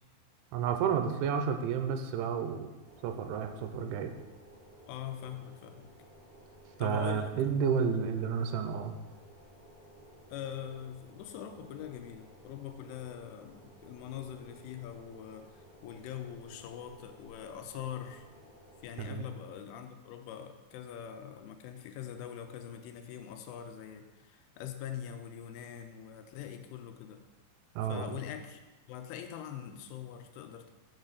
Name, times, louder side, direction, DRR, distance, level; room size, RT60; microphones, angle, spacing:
voice 1, 0.5-2.7 3.0-4.1 6.8-8.9 19.0-19.3 27.8-28.1, right 7 dB, 85° right, 7 dB, 3.0 m, -31 dB
sound 1, 2.8-18.9, right 1 dB, 35° right, 2.6 m, -56 dB
voice 2, 4.9-5.9 6.8-7.3 10.3-18.3 18.8-27.2 27.9-28.6 28.9-30.7, left 9 dB, 90° left, 7 dB, 3.1 m, -43 dB
7.1 x 6.3 x 4.0 m, 1.1 s
omnidirectional pair, 5.5 m